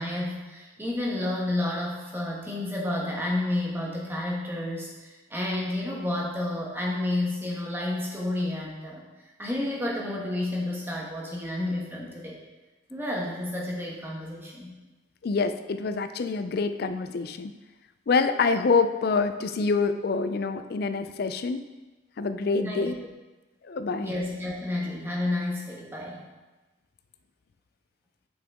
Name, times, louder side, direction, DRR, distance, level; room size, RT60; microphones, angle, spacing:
voice 1, 0.0-9.1 9.4-12.4 12.9-14.7 22.6-22.9 24.0-26.2, left 1 dB, 10° right, -3 dB, 1.2 m, -30 dB
voice 2, 15.2-17.5 18.1-21.7 22.2-23.0 23.7-24.1, left 4 dB, 50° left, 10 dB, 0.4 m, -26 dB
7.4 x 5.7 x 3.6 m, 1.2 s
head